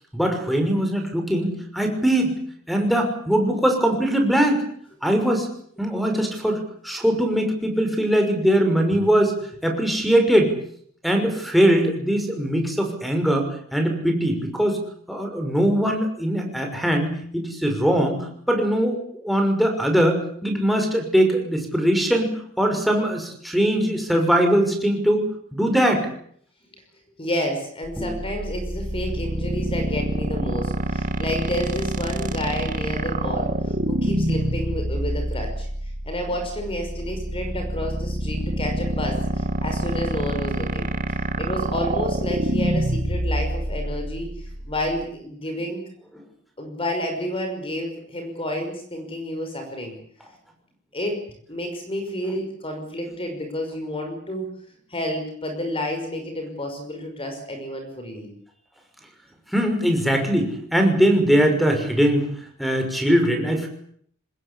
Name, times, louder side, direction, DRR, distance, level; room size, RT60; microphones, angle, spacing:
voice 1, 0.1-2.3 2.7-4.6 5.0-5.5 5.8-9.4 9.6-10.5 11.0-13.5 13.7-14.8 15.1-19.0 19.2-26.1 28.0-28.1 59.5-62.3 62.6-63.7, right 1 dB, ahead, 2 dB, 6.1 m, -21 dB
voice 2, 27.2-35.7 36.0-40.9 41.4-45.8 46.6-50.0 50.9-54.5 54.9-58.3, left 1 dB, 25° left, 4 dB, 5.8 m, -30 dB
sound 1, 27.8-45.0, right 1 dB, 40° right, 1.9 m, -26 dB
25.5 x 20.5 x 8.5 m, 0.64 s
head